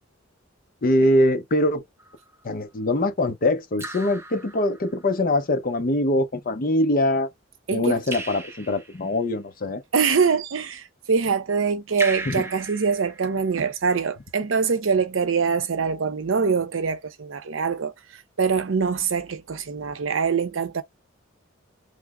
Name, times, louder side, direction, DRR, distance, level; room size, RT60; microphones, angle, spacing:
voice 1, 0.8-1.8 2.4-7.3 7.7-9.8 12.3-12.4, left 1 dB, 45° left, 0.6 m, -23 dB
Raindrop / Drip, 2.0-2.5 3.8-5.1 8.1-9.2 12.0-13.7, right 2 dB, 15° right, 0.5 m, -36 dB
voice 2, 7.7-8.0 9.9-20.8, right 5 dB, 75° right, 0.6 m, -24 dB
3.3 x 2.0 x 3.5 m
head